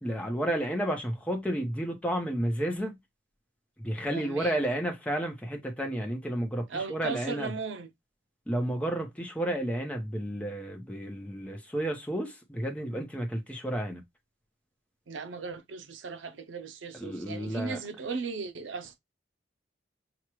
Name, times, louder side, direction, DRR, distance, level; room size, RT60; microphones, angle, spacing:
voice 1, 0.0-3.0 3.8-7.5 8.5-14.0 17.0-17.8, right 1 dB, 5° left, 0.8 m, -31 dB
voice 2, 4.1-4.6 6.7-7.9 15.1-19.0, right 4 dB, 90° right, 0.6 m, -37 dB
6.1 x 2.3 x 3.1 m
head